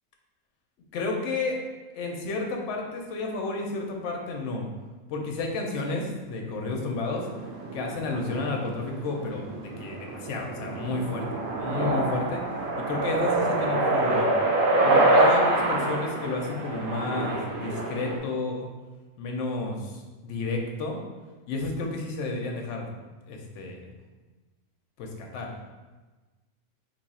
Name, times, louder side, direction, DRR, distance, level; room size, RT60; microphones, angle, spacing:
voice 1, 0.9-1.6 1.9-4.7 5.1-7.3 7.7-11.3 11.6-12.4 12.8-14.3 14.8-18.7 19.2-21.0 21.5-22.9 23.3-23.9 25.0-25.5, left 3 dB, 65° left, 1 dB, 0.8 m, -31 dB
sound 1, 7.1-18.2, right 2 dB, 70° right, 0.5 m, -26 dB
2.9 x 2.3 x 4.0 m, 1.3 s
omnidirectional pair, 1.4 m